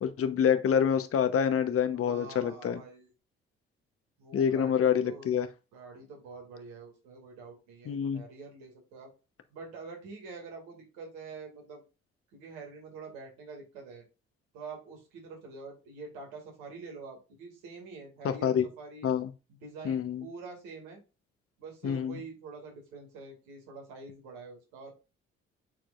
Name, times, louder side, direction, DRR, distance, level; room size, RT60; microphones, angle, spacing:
voice 1, 0.0-2.8 4.3-5.5 7.9-8.2 18.2-18.6 19.0-19.3 19.8-20.2 21.8-22.2, left 8 dB, 50° left, 1.0 m, -27 dB
voice 2, 1.9-3.1 4.2-5.3 5.7-9.1 9.5-11.8 12.3-14.0 14.5-19.1 19.6-21.0 21.6-24.9, right 4 dB, 75° right, 2.3 m, -46 dB
9.1 x 4.4 x 2.5 m
hypercardioid pair, 45°, 30 cm